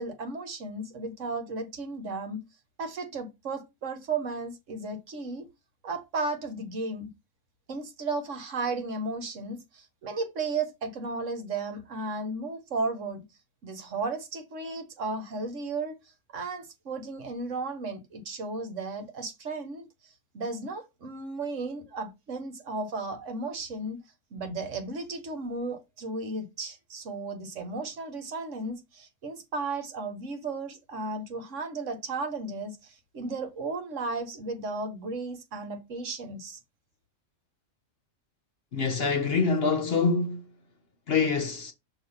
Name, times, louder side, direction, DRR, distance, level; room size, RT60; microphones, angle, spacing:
voice 1, 0.0-2.4 2.8-5.5 5.8-7.1 7.7-13.2 13.6-15.9 16.3-19.8 20.3-24.0 24.3-36.6, right 3 dB, 65° right, 1.4 m, -34 dB
voice 2, 38.7-40.4 41.1-41.7, left 4 dB, 55° left, 0.8 m, -25 dB
6.3 x 2.8 x 5.5 m
omnidirectional pair, 1.5 m